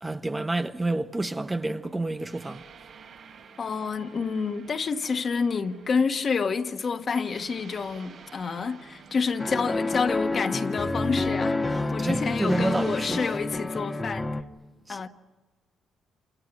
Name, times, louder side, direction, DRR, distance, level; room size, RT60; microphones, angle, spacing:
voice 1, 0.0-2.6 11.7-13.2 14.9-15.1, right 2 dB, 15° right, 0.9 m, -29 dB
sound 1, 1.2-13.4, right 6 dB, 70° right, 4.2 m, -51 dB
voice 2, 3.6-14.3 14.9-15.1, left 5 dB, 45° left, 1.6 m, -28 dB
sound 2, 9.4-14.4, left 2 dB, 20° left, 1.3 m, -28 dB
28.0 x 28.0 x 6.1 m
cardioid pair, 90°, 0 cm